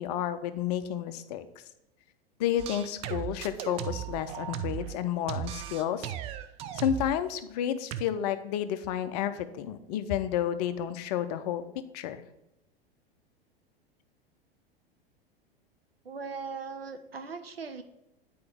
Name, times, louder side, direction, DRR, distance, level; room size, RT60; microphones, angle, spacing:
voice 1, 0.0-1.5 2.4-6.1 6.7-11.6 11.9-12.2, left 10 dB, 40° left, 11 dB, 0.6 m, -31 dB
sound 1, 2.6-5.0 5.3-7.2 7.9-8.0, right 11 dB, 20° right, 0.3 m, -36 dB
voice 2, 16.0-17.8, right 5 dB, 80° right, 7 dB, 0.9 m, -39 dB
9.6 x 4.6 x 3.5 m, 0.89 s
figure-of-eight pair, 90°, 30 cm